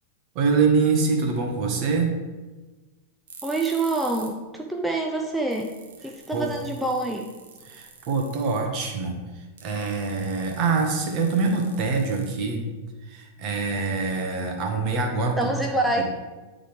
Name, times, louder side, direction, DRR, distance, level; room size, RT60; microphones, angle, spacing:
voice 1, 0.3-2.1 6.3-6.6 7.6-9.2 9.6-12.6 13.1-15.4 16.0-16.1, right 4 dB, 45° right, 2 dB, 1.4 m, -24 dB
sound 1, 3.3-4.4 4.7-4.8 5.2-5.3 5.5-8.7 9.6-12.7, right 6 dB, 80° right, 1.1 m, -46 dB
voice 2, 3.4-5.7 6.0-7.3 15.4-16.0, right 2 dB, 5° right, 0 dB, 0.6 m, -26 dB
9.7 x 3.9 x 3.5 m, 1.2 s
hypercardioid pair, 120°, 0 cm